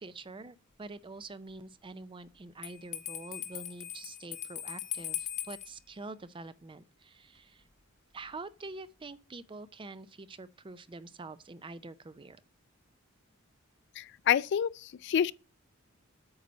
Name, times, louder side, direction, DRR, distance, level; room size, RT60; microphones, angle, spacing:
voice 1, 0.0-7.6 8.1-12.4, right 3 dB, 25° right, 0.5 m, -46 dB
Bell, 2.6-5.7, left 11 dB, 35° left, 0.9 m, -39 dB
voice 2, 14.0-15.3, left 9 dB, 55° left, 0.3 m, -28 dB
8.6 x 4.1 x 6.2 m
head